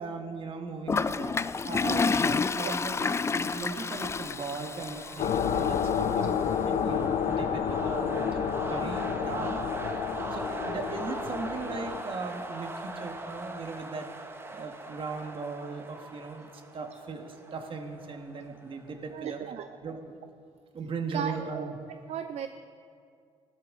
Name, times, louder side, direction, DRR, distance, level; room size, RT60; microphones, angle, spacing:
voice 1, 0.0-9.6 10.3-14.1 14.5-20.1 20.7-22.0, right 4 dB, 45° right, 5 dB, 1.6 m, -38 dB
Toilet flush, 0.9-5.9, left 4 dB, 20° left, 0.3 m, -29 dB
sound 1, 2.8-19.1, right 2 dB, 20° right, 1.1 m, -41 dB
sound 2, 5.2-12.0, left 7 dB, 65° left, 0.8 m, -30 dB
voice 2, 19.1-19.7 21.1-21.7 22.1-22.5, right 8 dB, 60° right, 9 dB, 0.5 m, -35 dB
17.0 x 13.0 x 3.8 m, 2.3 s
cardioid pair, 85°, 12 cm